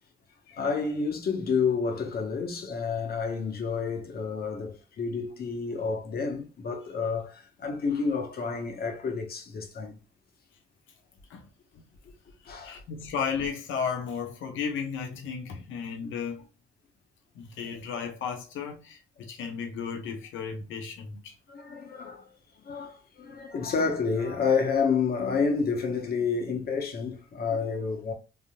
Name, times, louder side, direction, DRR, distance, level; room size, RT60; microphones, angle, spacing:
voice 1, 0.5-10.0 12.5-12.8 16.0-16.1 21.5-22.3 22.6-28.1, left 5 dB, 50° left, 1.0 m, -29 dB
voice 2, 12.6-16.5 17.3-21.3, left 6 dB, 80° left, 0.8 m, -34 dB
3.5 x 2.6 x 2.3 m
cardioid pair, 90°, 20 cm